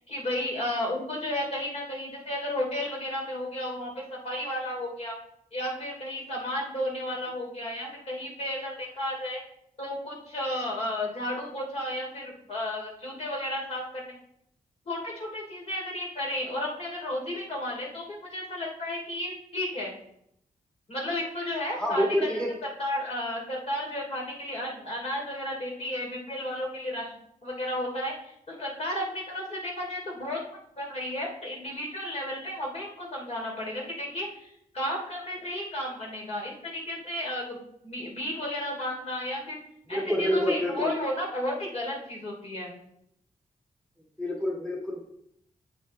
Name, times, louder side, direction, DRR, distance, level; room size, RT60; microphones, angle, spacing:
voice 1, 0.0-5.2 5.5-9.4 9.8-14.1 14.8-19.9 20.9-22.1 22.8-27.1 27.4-30.4 30.8-39.6 39.9-42.7, left 1 dB, 50° left, -2 dB, 3.0 m, -33 dB
voice 2, 21.7-22.5 39.9-40.9 44.2-45.0, equal, 5° left, -2 dB, 1.6 m, -27 dB
8.5 x 8.1 x 3.2 m, 0.74 s
wide cardioid pair, 100°, 14 cm